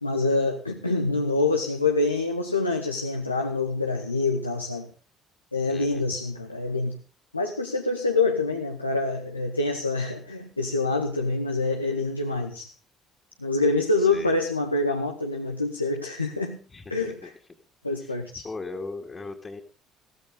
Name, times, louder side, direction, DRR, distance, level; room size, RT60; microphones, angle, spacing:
voice 1, 0.0-4.9 5.5-7.0 7.3-12.7 13.4-16.6 16.9-17.3 17.8-18.4, left 3 dB, 90° left, 2 dB, 1.1 m, -26 dB
voice 2, 5.7-6.1 14.0-14.3 16.7-17.3 18.0-18.2 18.4-19.6, left 3 dB, 25° left, -3 dB, 2.5 m, -38 dB
16.0 x 14.5 x 3.8 m, 0.35 s
figure-of-eight pair, 55°, 0 cm